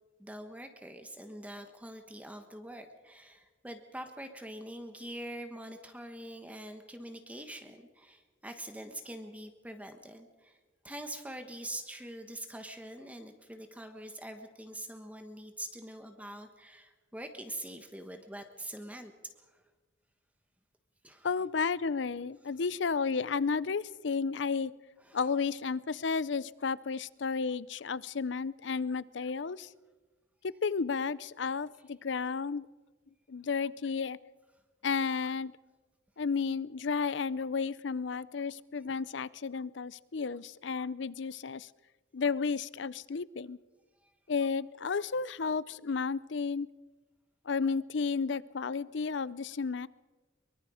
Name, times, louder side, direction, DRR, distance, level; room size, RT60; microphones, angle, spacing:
voice 1, 0.2-10.6 10.8-19.6 21.0-21.3 25.0-25.2 44.0-44.1, right 1 dB, 10° right, 6 dB, 1.2 m, -44 dB
voice 2, 21.2-24.7 25.1-29.7 30.4-32.7 33.3-34.2 34.8-35.5 36.2-41.7 42.1-43.6 44.3-46.7 47.5-49.9, left 5 dB, 70° left, 19 dB, 0.6 m, -32 dB
23.5 x 23.0 x 5.0 m, 1.3 s
head